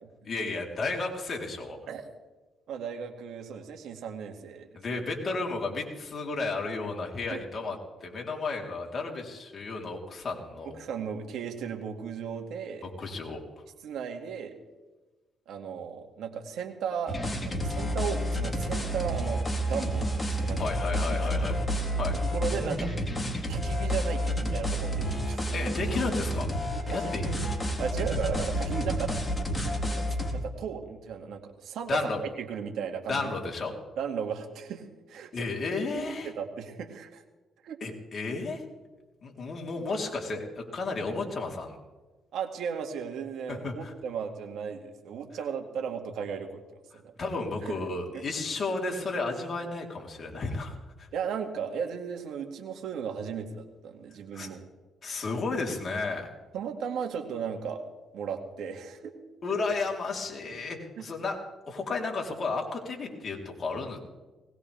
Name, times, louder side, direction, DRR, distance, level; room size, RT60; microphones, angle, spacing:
voice 1, 0.2-1.8 4.7-10.8 13.0-13.4 20.6-21.6 22.0-22.1 25.5-26.5 26.9-27.2 31.9-32.2 33.1-33.7 35.3-36.3 37.8-38.6 39.2-41.8 43.5-43.9 46.9-51.1 54.3-54.5 55.0-56.3 59.4-61.4 61.7-64.0, left 3 dB, 45° left, 0 dB, 4.0 m, -33 dB
voice 2, 2.7-4.7 7.3-7.4 10.7-12.9 13.8-14.5 15.5-17.2 17.4-20.6 21.1-21.5 22.3-22.9 23.5-25.4 26.9-27.4 27.8-29.1 29.9-30.0 30.3-33.3 34.0-35.3 35.9-37.2 37.6-37.8 42.3-46.6 46.9-47.1 47.6-47.8 48.1-48.2 51.1-54.6 56.5-57.8 58.1-59.1 61.0-61.1, right 7 dB, 75° right, 4 dB, 2.4 m, -35 dB
sound 1, 17.1-30.3, equal, 20° left, 3.9 m, -30 dB
20.0 x 20.0 x 3.6 m, 1.2 s
cardioid pair, 90°, 0 cm